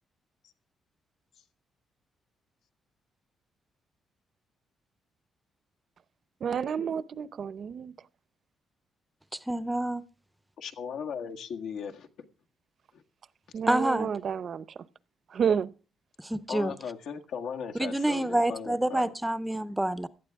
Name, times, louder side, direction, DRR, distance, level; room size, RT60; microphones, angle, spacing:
voice 1, 6.4-7.9 13.5-14.8 15.3-15.7, right 7 dB, 45° right, 0.7 m, -30 dB
voice 2, 9.3-10.0 13.7-14.1 16.2-16.8 17.7-20.1, right 1 dB, 5° right, 0.6 m, -28 dB
voice 3, 10.6-12.1 12.9-13.0 16.5-19.1, left 7 dB, 70° left, 1.7 m, -37 dB
17.5 x 12.5 x 3.6 m
cardioid pair, 155°, 0 cm